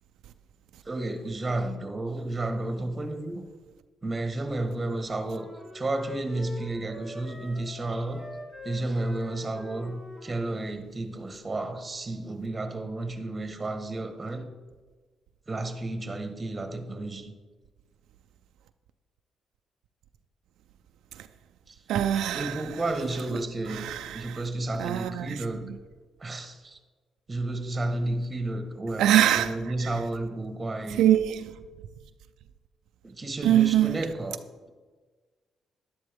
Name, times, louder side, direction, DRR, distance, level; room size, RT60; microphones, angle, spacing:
voice 1, 0.8-3.4 4.0-5.5 5.7-8.2 8.6-14.5 15.5-17.3 21.7-21.8 22.3-25.7 26.2-26.8 27.3-31.1 33.0-34.4, right 2 dB, 25° right, 1.3 m, -32 dB
sound 1, 5.3-10.4, equal, 25° left, 3.5 m, -44 dB
voice 2, 21.9-22.6 23.7-24.4 24.8-25.4 29.0-29.5 29.8-29.9 31.0-31.5 33.4-34.0, right 11 dB, 85° right, 0.4 m, -23 dB
11.0 x 11.0 x 3.5 m
cardioid pair, 90°, 0 cm